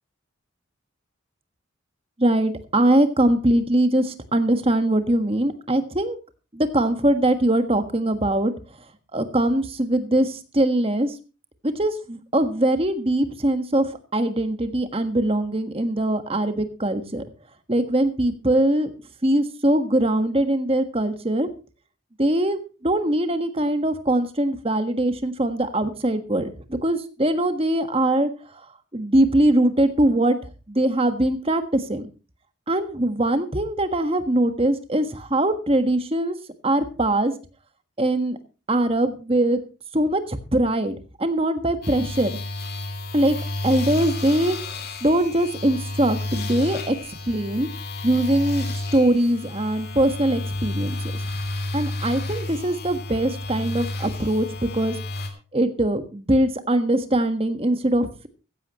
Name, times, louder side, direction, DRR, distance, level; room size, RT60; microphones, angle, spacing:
voice 1, 2.2-6.2 6.5-8.5 9.1-11.2 11.6-17.2 17.7-18.9 19.2-21.5 22.2-28.7 28.9-30.4 30.7-32.1 32.7-36.4 36.6-37.3 38.0-38.4 38.7-39.6 39.9-42.3 43.1-43.4 43.6-44.6 45.0-46.9 47.3-47.7 48.0-48.7 48.9-51.0 51.7-54.9 55.5-58.3, right 1 dB, 25° right, 9 dB, 1.5 m, -22 dB
sound 1, 41.8-55.3, left 2 dB, 50° left, 2.8 m, -31 dB
15.5 x 15.0 x 3.0 m, 0.33 s
head